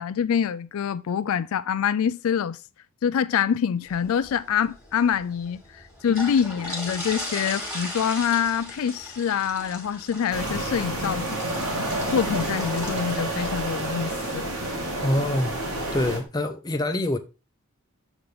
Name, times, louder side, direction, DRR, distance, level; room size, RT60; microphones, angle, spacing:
voice 1, 0.0-2.6 3.0-11.3 12.1-14.5, left 8 dB, 75° left, 0.4 m, -25 dB
sound 1, 3.9-16.2, left 1 dB, 5° right, 2.1 m, -39 dB
sound 2, 10.3-16.2, right 1 dB, 75° right, 2.2 m, -29 dB
voice 2, 15.0-15.6 15.9-17.2, left 1 dB, 20° left, 0.6 m, -25 dB
7.0 x 4.0 x 4.9 m
head